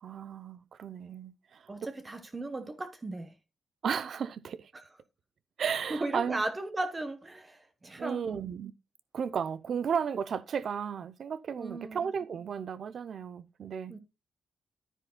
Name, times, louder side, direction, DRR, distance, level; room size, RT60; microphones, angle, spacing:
voice 1, 0.0-1.7 3.8-4.7 5.6-6.4 8.0-8.7 9.1-14.0, right 7 dB, 55° right, 0.6 m, -34 dB
voice 2, 1.7-3.3 4.7-4.8 5.9-8.5 11.6-12.1 13.9-14.0, right 2 dB, 20° right, 0.9 m, -36 dB
10.0 x 9.9 x 2.2 m
cardioid pair, 110°, 0 cm